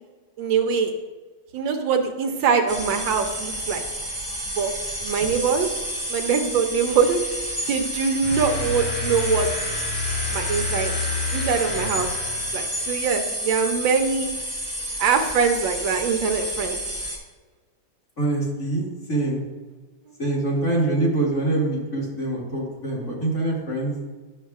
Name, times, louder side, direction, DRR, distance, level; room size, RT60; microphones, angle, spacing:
voice 1, 0.4-0.9 1.5-3.8 4.6-4.7 5.0-5.7 6.1-7.2 7.7-9.5 10.3-10.9 11.3-12.2 12.5-14.3 15.0-16.8, right 6 dB, 75° right, 4 dB, 1.4 m, -23 dB
sound 1, 2.7-17.2, equal, 10° left, 1.3 m, -30 dB
sound 2, 8.2-12.9, left 4 dB, 65° left, 2.1 m, -30 dB
voice 2, 18.2-19.4 20.2-24.0, right 2 dB, 40° left, -4 dB, 2.0 m, -25 dB
11.0 x 6.5 x 2.4 m, 1.3 s
omnidirectional pair, 2.2 m